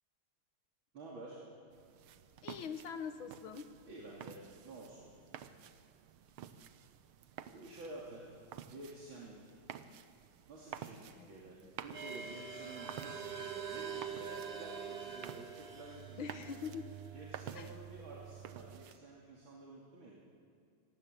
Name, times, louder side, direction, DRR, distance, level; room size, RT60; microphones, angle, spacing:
voice 1, 0.9-1.4 3.9-5.1 7.5-9.4 10.5-16.5 17.1-20.2, right 2 dB, 70° right, -4 dB, 3.6 m, -51 dB
sound 1, 1.7-19.0, right 9 dB, 85° right, 1.8 m, -52 dB
voice 2, 2.4-3.7 11.2-11.3 11.6-11.7 16.2-16.9 17.6-17.7, left 6 dB, 70° left, 8 dB, 2.1 m, -43 dB
sound 2, 11.9-18.8, right 6 dB, 40° right, 1.0 m, -45 dB
26.5 x 19.5 x 8.3 m, 2.3 s
omnidirectional pair, 2.3 m